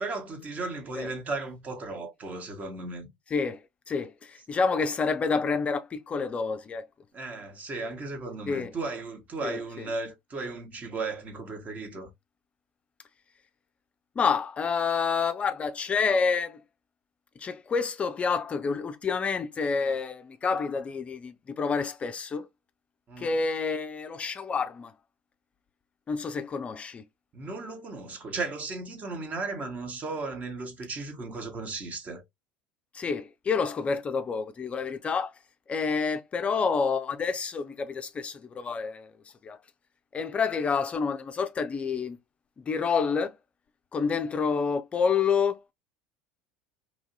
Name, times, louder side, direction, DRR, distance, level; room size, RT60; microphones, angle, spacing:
voice 1, 0.0-3.1 7.1-12.1 23.1-23.4 27.3-32.2, right 3 dB, 35° right, 0.9 m, -35 dB
voice 2, 3.3-3.6 3.9-6.8 8.5-8.7 9.4-9.6 14.2-16.6 17.4-22.5 23.2-24.9 26.1-27.0 32.9-35.3 35.7-39.1 39.4-39.6 40.1-42.2 42.6-43.3 43.9-45.7, left 5 dB, 30° left, 0.4 m, -28 dB
2.9 x 2.6 x 2.6 m
hypercardioid pair, 75°, 5 cm